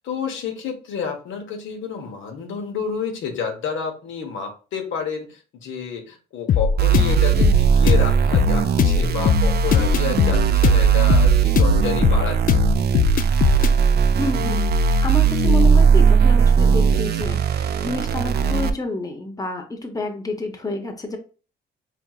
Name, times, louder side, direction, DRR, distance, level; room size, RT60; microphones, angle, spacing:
voice 1, 0.0-12.6, left 6 dB, 80° left, 3 dB, 1.1 m, -30 dB
sound 1, 6.5-13.8, left 6 dB, 45° left, 0.4 m, -19 dB
sound 2, 6.8-18.7, right 6 dB, 55° right, 0.5 m, -18 dB
voice 2, 14.2-14.6 15.0-21.2, left 1 dB, 20° left, 4 dB, 0.9 m, -28 dB
4.6 x 3.5 x 2.4 m, 0.36 s
cardioid pair, 90°, 20 cm